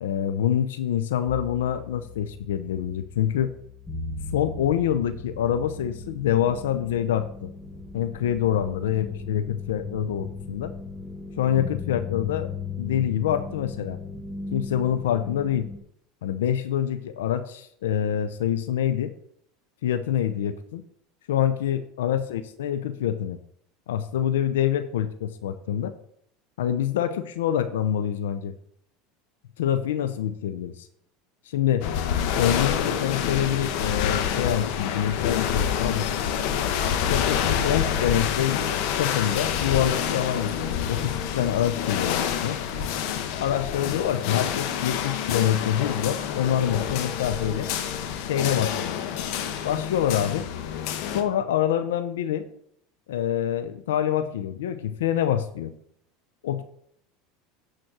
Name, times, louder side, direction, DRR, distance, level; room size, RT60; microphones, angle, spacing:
voice 1, 0.0-3.5 4.3-7.5 7.9-10.7 11.4-12.5 12.8-14.0 14.5-15.7 16.2-19.1 19.8-20.8 21.3-23.4 23.9-25.9 26.6-28.5 29.6-30.9 31.5-31.9 32.4-36.3 37.1-38.6 38.9-42.6 43.4-47.7 48.2-49.0 49.6-50.5 51.1-52.5 53.1-55.7 56.4-56.6, left 10 dB, 90° left, 10 dB, 0.7 m, -26 dB
sound 1, 1.3-15.8, left 4 dB, 10° left, 1.8 m, -37 dB
sound 2, 31.8-51.2, left 8 dB, 70° left, 1.1 m, -27 dB
9.4 x 4.3 x 6.1 m, 0.69 s
supercardioid pair, 105°, 0 cm